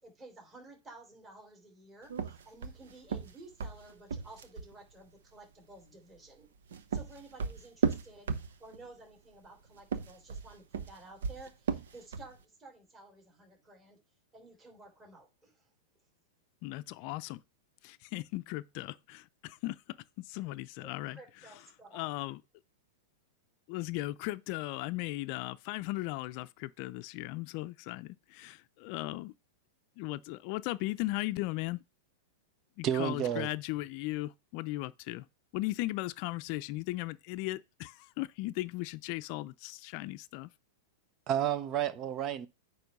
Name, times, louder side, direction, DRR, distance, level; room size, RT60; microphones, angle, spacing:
voice 1, 0.0-6.5 6.9-14.0 14.3-15.7 20.8-22.0, right 2 dB, 20° right, 3.1 m, -53 dB
sound 1, 2.1-4.7 6.4-8.9 9.8-12.4, right 6 dB, 80° right, 0.9 m, -35 dB
voice 2, 16.6-17.4 17.8-21.2 21.9-22.4 23.7-29.3 30.0-31.8 32.8-35.3 35.5-40.5, left 19 dB, 50° left, 0.5 m, -37 dB
voice 3, 32.8-33.5 41.3-42.5, right 10 dB, 35° right, 0.8 m, -31 dB
9.2 x 3.2 x 5.3 m
hypercardioid pair, 125°, 0 cm